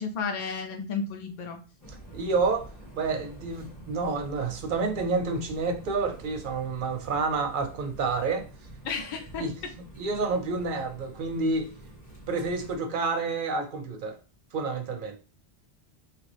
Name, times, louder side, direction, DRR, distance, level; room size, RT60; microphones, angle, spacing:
voice 1, 0.0-1.6 8.8-9.4, left 5 dB, 55° left, 0.7 m, -32 dB
sound 1, 1.8-12.8, right 2 dB, 25° left, 1.0 m, -47 dB
voice 2, 2.1-2.7 3.0-8.5 9.4-9.6 10.0-11.7 12.3-14.2 14.5-15.2, right 4 dB, 60° right, 0.7 m, -29 dB
3.0 x 2.5 x 3.2 m
omnidirectional pair, 1.1 m